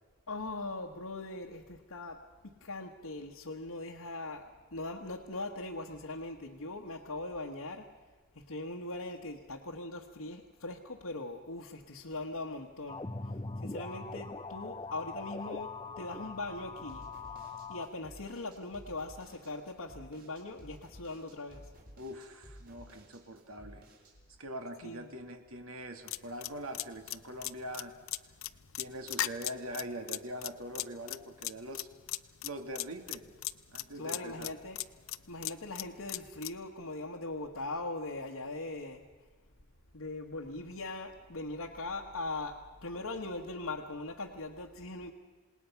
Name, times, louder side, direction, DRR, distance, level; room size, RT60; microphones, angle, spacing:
voice 1, 0.3-7.9 8.3-17.1 17.7-21.7 24.8-25.1 33.9-34.8 35.3-39.0 39.9-45.1, left 2 dB, 85° left, -1 dB, 1.5 m, -40 dB
sound 1, 12.9-17.9, left 3 dB, 20° left, 0.6 m, -42 dB
sound 2, 16.9-24.1, equal, 40° right, 4.2 m, -54 dB
voice 2, 22.0-23.8 24.4-28.0 28.7-31.9 32.4-33.3 33.7-34.5, equal, 75° right, 5 dB, 2.2 m, -43 dB
sound 3, 26.1-36.6, left 14 dB, 65° left, 0.6 m, -38 dB
27.5 x 19.5 x 5.9 m, 1.4 s
head